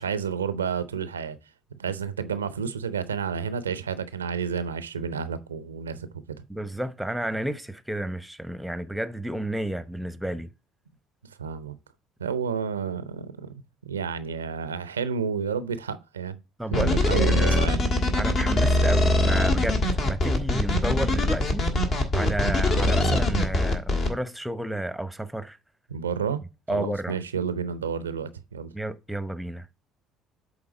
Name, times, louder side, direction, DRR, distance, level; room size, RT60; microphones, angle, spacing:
voice 1, 0.0-1.4 1.8-6.1 11.4-11.8 12.2-13.5 13.8-16.4 16.7-17.8 25.9-26.4 26.7-28.7, right 6 dB, 90° right, 0.5 m, -30 dB
voice 2, 6.5-10.5 16.6-17.6 18.1-21.6 22.1-25.6 26.7-27.1 28.7-29.7, right 1 dB, 5° right, 0.8 m, -31 dB
sound 1, 16.7-24.1, left 2 dB, 55° left, 1.7 m, -22 dB
7.9 x 3.6 x 4.9 m
hypercardioid pair, 55°, 0 cm